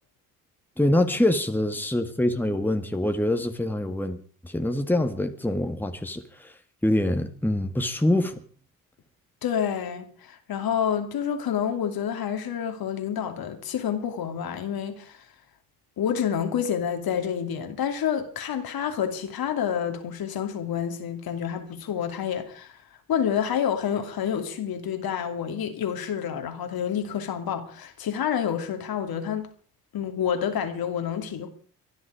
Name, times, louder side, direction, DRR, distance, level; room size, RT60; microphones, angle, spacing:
voice 1, 0.8-4.2 4.4-6.5 6.8-8.4, left 1 dB, 5° left, 2.0 m, -25 dB
voice 2, 9.4-15.3 16.0-22.8 23.1-29.5 29.9-31.5, left 8 dB, 50° left, 2.7 m, -28 dB
24.0 x 11.5 x 5.1 m
hypercardioid pair, 55°, 45 cm